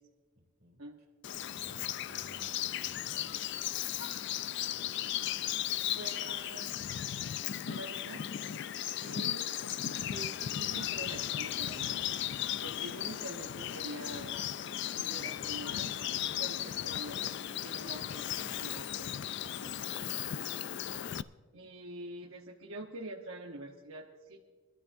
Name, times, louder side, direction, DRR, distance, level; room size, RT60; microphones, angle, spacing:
voice 1, 0.3-1.1 1.6-3.3 18.4-18.6 19.9-20.4, equal, 45° right, 1 dB, 2.7 m, -57 dB
Bird vocalization bird call bird song, 1.2-21.2, left 11 dB, 55° left, 0.3 m, -36 dB
voice 2, 6.0-6.9 7.5-8.2 8.9-9.5 9.8-12.0 12.3-14.3 14.8-15.9 16.2-17.2 17.5-18.2 18.5-19.7 21.5-24.5, right 2 dB, 75° right, 0 dB, 1.1 m, -46 dB
23.0 x 13.0 x 2.7 m, 1.5 s
head